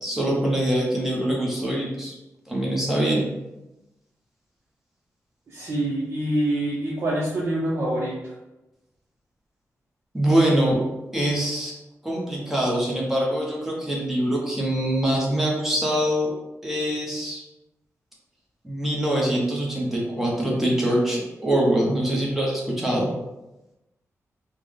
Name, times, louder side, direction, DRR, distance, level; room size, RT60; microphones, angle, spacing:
voice 1, 0.0-2.1 2.5-3.3 10.1-10.8 11.1-11.7 12.0-16.3 16.6-17.4 18.6-23.1, right 1 dB, 5° right, -4 dB, 0.8 m, -24 dB
voice 2, 5.5-8.1, right 1 dB, 50° right, -7 dB, 0.7 m, -25 dB
3.3 x 2.1 x 3.6 m, 0.97 s
wide cardioid pair, 155°, 6 cm